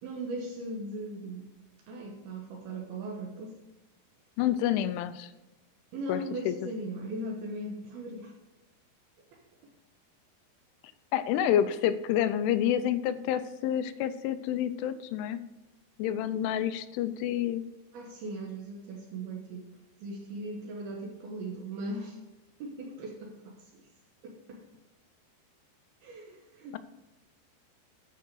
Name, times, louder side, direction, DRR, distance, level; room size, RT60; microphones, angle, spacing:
voice 1, 0.0-1.5 1.9-3.6 5.9-8.4 9.3-9.4 17.9-19.7 20.0-22.2 22.6-23.9 24.2-24.6 26.0-26.8, right 1 dB, 70° right, 1 dB, 2.5 m, -39 dB
voice 2, 4.4-5.3 6.1-6.6 11.1-15.4 16.0-17.6, left 10 dB, 85° left, 12 dB, 3.0 m, -28 dB
13.0 x 5.6 x 4.6 m, 1.0 s
omnidirectional pair, 5.5 m